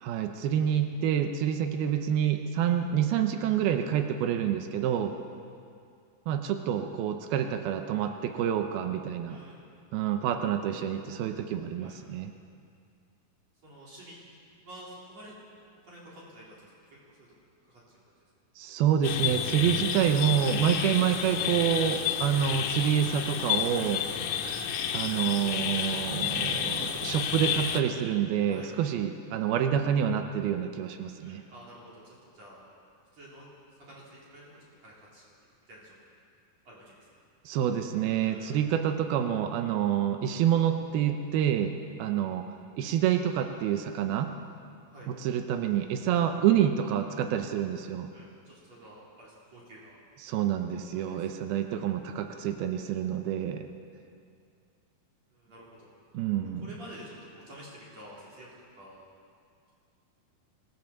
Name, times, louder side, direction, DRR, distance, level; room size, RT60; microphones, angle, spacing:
voice 1, 0.0-5.2 6.3-9.4 9.9-12.3 18.6-24.0 24.9-31.4 37.5-41.7 42.0-42.5 42.8-44.3 45.2-48.1 50.2-53.7 56.1-56.7, right 9 dB, 90° right, 6 dB, 2.9 m, -27 dB
voice 2, 9.3-9.7 10.6-11.1 11.7-12.1 13.6-14.2 14.6-15.4 15.8-16.7 17.2-17.3 17.6-17.8 18.2-18.3 28.4-28.7 31.1-32.6 33.1-33.5 33.8-36.2 36.6-37.0 38.2-38.7 44.9-45.1 48.1-50.0 51.0-51.3 51.7-51.9 55.3-56.0 56.6-58.5 58.7-59.0, right 1 dB, 45° right, -6 dB, 4.8 m, -50 dB
sound 1, 19.0-27.8, left 8 dB, 75° left, 2.7 m, -30 dB
25.5 x 16.0 x 7.3 m, 2.3 s
omnidirectional pair, 4.2 m